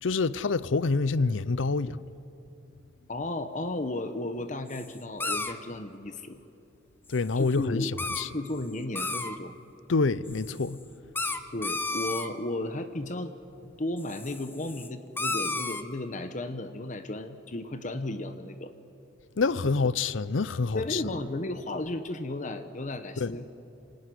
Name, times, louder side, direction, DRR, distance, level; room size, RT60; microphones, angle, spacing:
voice 1, 0.0-2.0 7.1-8.3 9.9-10.8 19.4-21.1 23.2-23.3, left 4 dB, 80° left, 0.6 m, -27 dB
voice 2, 3.1-6.4 7.4-7.9 8.3-9.5 11.5-13.3 13.6-18.7 20.7-23.5, left 1 dB, 40° left, 1.0 m, -34 dB
sound 1, 4.7-4.9 5.2-5.5 7.1-7.2 7.5-7.6 8.0-8.5 8.8-9.4 10.3-10.7 11.1-12.3 14.0-14.9 15.2-15.8, left 3 dB, 10° left, 0.9 m, -32 dB
27.0 x 18.5 x 10.0 m
head